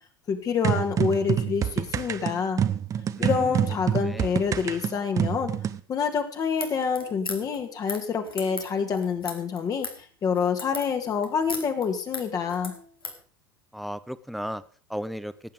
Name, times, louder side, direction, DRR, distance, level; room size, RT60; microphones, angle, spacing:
voice 1, 0.3-2.6 3.2-5.5 5.9-9.9 10.2-12.7, left 6 dB, 30° left, 5 dB, 1.9 m, -27 dB
sound 1, 0.6-5.8, right 9 dB, 30° right, 0.9 m, -26 dB
voice 2, 3.2-3.6 3.9-4.3 13.7-14.6 14.9-15.3, equal, ahead, 15 dB, 0.8 m, -35 dB
sound 2, 6.5-13.2, left 3 dB, 80° left, 2.3 m, -38 dB
17.0 x 8.7 x 5.1 m, 0.41 s
figure-of-eight pair, 75°, 12 cm